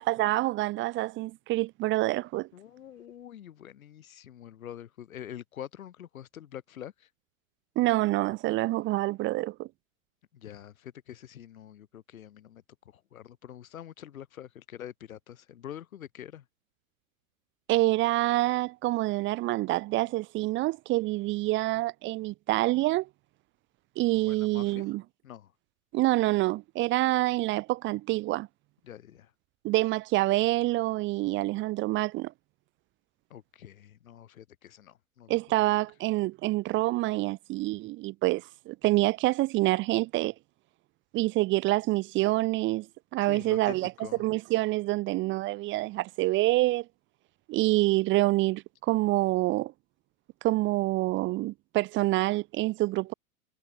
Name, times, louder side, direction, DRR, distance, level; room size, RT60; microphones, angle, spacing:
voice 1, 0.0-2.5 7.8-9.7 17.7-23.1 24.0-25.0 25.9-28.5 29.6-32.3 35.3-40.3 41.1-42.9 43.1-43.9 44.2-46.8 47.5-49.7 50.4-53.1, right 19 dB, 25° right, 0.7 m, -27 dB
voice 2, 2.5-7.1 10.3-16.5 24.2-24.8 25.2-25.5 28.8-29.3 33.3-35.7 43.2-44.3, left 10 dB, 70° left, 2.0 m, -45 dB
hypercardioid pair, 105°, 43 cm